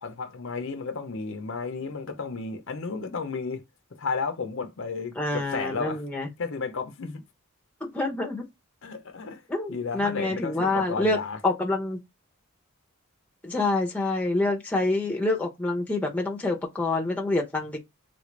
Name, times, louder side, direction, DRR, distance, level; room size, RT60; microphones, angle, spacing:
voice 1, 0.0-3.6 4.0-6.0 6.4-7.2 8.8-9.4 9.7-11.4, left 4 dB, 60° left, 0.6 m, -33 dB
voice 2, 5.2-6.3 7.8-8.4 9.5-11.2 11.4-12.0 13.4-17.8, left 2 dB, 5° left, 0.7 m, -27 dB
3.7 x 2.5 x 3.0 m
head